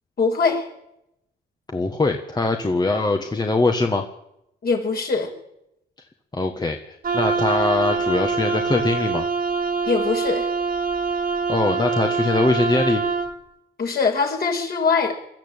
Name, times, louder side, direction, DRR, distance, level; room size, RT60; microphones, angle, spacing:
voice 1, 0.2-0.7 4.6-5.3 9.9-10.5 13.8-15.1, left 4 dB, 50° left, 1 dB, 5.8 m, -22 dB
voice 2, 1.7-4.0 6.3-9.3 11.5-13.0, left 3 dB, 20° left, 4 dB, 1.7 m, -22 dB
Wind instrument woodwind instrument, 7.0-13.3, right 4 dB, 45° right, 2.2 m, -24 dB
22.0 x 13.5 x 9.1 m, 0.83 s
cardioid pair, 90°, 20 cm